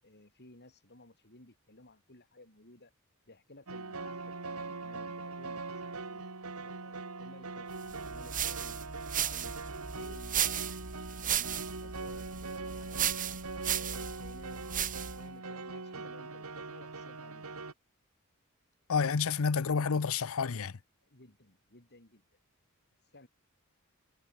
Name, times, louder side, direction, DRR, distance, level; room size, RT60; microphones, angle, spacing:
voice 1, 0.0-2.9 3.3-6.2 6.6-9.5 9.9-13.1 13.6-14.6 15.2-17.6 21.0-22.2 23.1-23.3, left 2 dB, 50° left, 7.4 m, -56 dB
sound 1, 3.7-17.7, right 3 dB, 85° right, 2.2 m, -42 dB
sound 2, 7.9-15.3, right 9 dB, 40° right, 2.0 m, -35 dB
voice 2, 18.9-20.8, left 5 dB, 70° left, 0.7 m, -29 dB
head